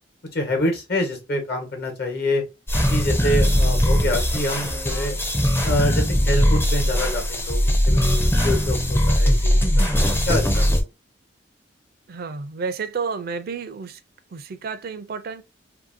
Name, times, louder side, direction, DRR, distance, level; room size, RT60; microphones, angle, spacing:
voice 1, 0.3-2.4 2.9-5.1 5.6-8.8 9.1-10.6, left 1 dB, 60° left, 1.1 m, -26 dB
sound 1, 2.7-10.8, equal, 15° left, 0.5 m, -20 dB
voice 2, 12.1-14.0 14.3-15.4, right 5 dB, 55° right, 0.4 m, -31 dB
2.7 x 2.7 x 2.5 m
head